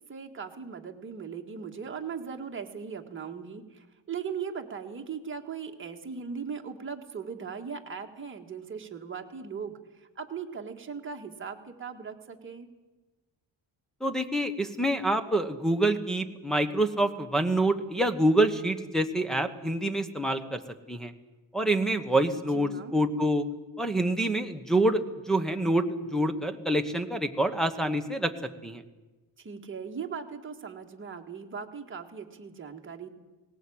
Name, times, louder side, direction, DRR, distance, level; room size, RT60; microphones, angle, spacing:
voice 1, 0.1-12.7 22.5-23.0 29.4-33.1, right 6 dB, 25° right, 3 dB, 1.7 m, -39 dB
voice 2, 14.0-20.6 20.9-21.1 21.5-23.4 23.8-25.0 25.3-28.3 28.6-28.8, right 1 dB, ahead, 3 dB, 1.0 m, -26 dB
19.0 x 18.0 x 8.6 m, 1.2 s
wide cardioid pair, 180°, 44 cm